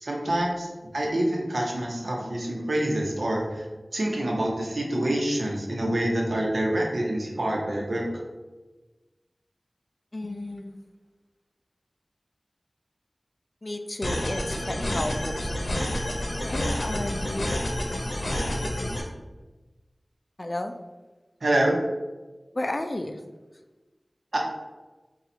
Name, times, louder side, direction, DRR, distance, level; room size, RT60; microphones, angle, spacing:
voice 1, 0.0-3.6 3.9-8.0 21.4-21.8 24.3-24.4, right 1 dB, 85° right, -1 dB, 0.8 m, -26 dB
voice 2, 10.1-10.8 13.6-15.8 16.4-17.6 20.4-20.7 22.5-23.2, left 1 dB, 45° left, 7 dB, 0.3 m, -32 dB
sound 1, 14.0-19.0, left 1 dB, 80° left, 0.7 m, -29 dB
3.9 x 2.3 x 4.2 m, 1.2 s
wide cardioid pair, 50°, 0 cm